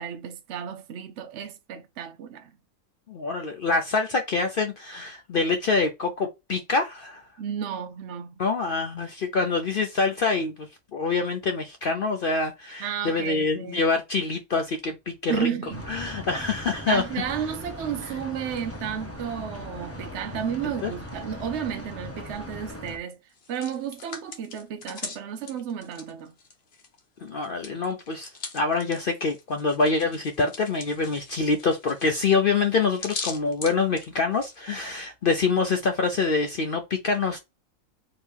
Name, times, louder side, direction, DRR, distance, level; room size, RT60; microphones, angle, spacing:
voice 1, 0.0-2.5 7.4-8.4 12.8-13.8 15.3-15.9 16.9-23.2 23.5-26.3, right 8 dB, 65° right, 0.7 m, -32 dB
voice 2, 3.1-7.2 8.4-15.5 15.9-17.1 20.6-20.9 27.2-37.4, left 4 dB, 65° left, 0.5 m, -26 dB
sound 1, 15.7-23.0, left 1 dB, 15° left, 0.6 m, -39 dB
Hands, 23.3-27.0 27.3-34.6, left 4 dB, 50° left, 1.1 m, -40 dB
4.5 x 2.9 x 3.4 m
omnidirectional pair, 1.6 m